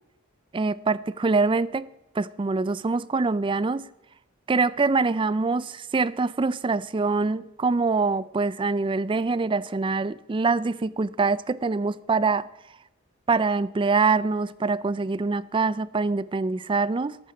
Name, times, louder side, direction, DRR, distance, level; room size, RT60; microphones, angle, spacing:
voice 1, 0.5-1.9 2.2-3.9 4.5-12.5 13.3-17.2, right 4 dB, 25° right, 0.4 m, -24 dB
13.0 x 13.0 x 4.9 m
head